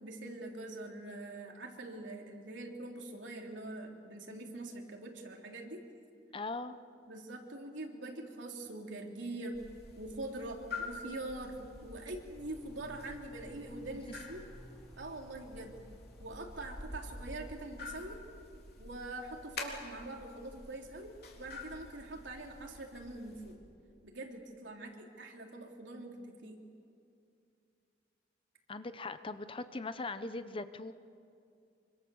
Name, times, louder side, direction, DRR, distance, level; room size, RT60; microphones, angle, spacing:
voice 1, 0.0-5.8 7.0-9.6 10.0-11.6 11.8-14.5 15.0-15.8 16.2-18.2 18.8-23.6 24.0-26.6, right 2 dB, 75° right, 1 dB, 3.5 m, -44 dB
voice 2, 6.3-6.8 28.7-30.9, left 3 dB, 30° left, 11 dB, 0.8 m, -40 dB
sound 1, 9.5-23.5, left 3 dB, 55° left, 3.6 m, -48 dB
sound 2, 12.3-17.7, equal, 5° left, 4.2 m, -59 dB
26.0 x 25.0 x 7.1 m, 2.4 s
head